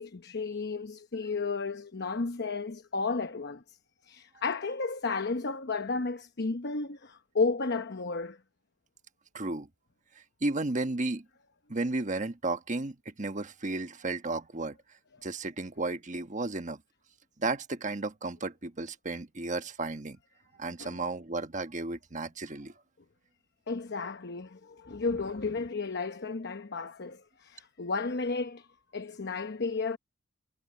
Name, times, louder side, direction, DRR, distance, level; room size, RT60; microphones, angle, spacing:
voice 1, 0.0-3.8 4.1-8.4 20.8-20.9 23.7-28.7 28.9-30.0, left 4 dB, 55° left, 0.9 m, -33 dB
voice 2, 9.3-9.7 10.1-11.3 11.7-14.8 15.2-16.8 17.4-20.2 20.6-22.7, right 2 dB, 35° right, 1.3 m, -33 dB
head